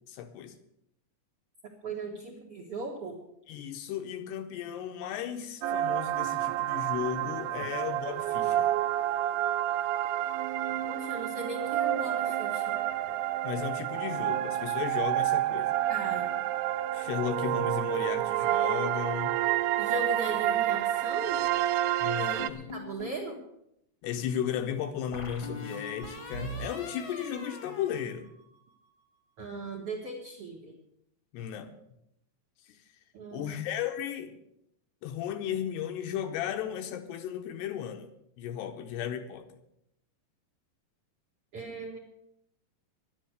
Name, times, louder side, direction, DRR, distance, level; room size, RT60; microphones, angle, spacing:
voice 1, 0.1-0.5 3.5-8.7 13.4-15.7 16.9-19.4 22.0-22.7 24.0-28.3 31.3-31.7 32.7-32.8 33.3-34.4 35.0-38.1 38.4-39.5, left 9 dB, 75° left, 7 dB, 2.8 m, -35 dB
voice 2, 1.8-3.2 10.9-12.8 15.9-16.3 19.8-21.4 22.7-23.4 29.4-30.7 33.1-33.5 41.5-42.0, right 3 dB, 65° right, 2 dB, 1.5 m, -38 dB
sound 1, 5.6-22.5, right 13 dB, 80° right, 2.4 m, -29 dB
sound 2, 22.4-23.2 25.1-28.8, left 1 dB, 50° left, 1.5 m, -41 dB
11.5 x 10.0 x 7.9 m, 0.79 s
omnidirectional pair, 5.2 m